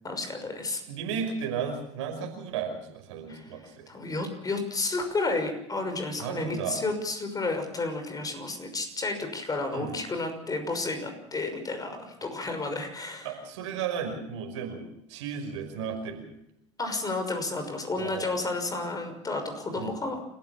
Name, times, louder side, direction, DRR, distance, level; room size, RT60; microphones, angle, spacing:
voice 1, 0.0-0.8 3.3-13.3 16.8-20.2, left 3 dB, 25° left, 6 dB, 6.1 m, -32 dB
voice 2, 0.9-3.9 6.2-6.8 9.7-10.0 13.2-16.3 18.0-18.3 19.8-19.9, right 6 dB, 75° right, 5 dB, 5.4 m, -34 dB
29.5 x 15.0 x 7.2 m, 0.80 s
hypercardioid pair, 75°, 16 cm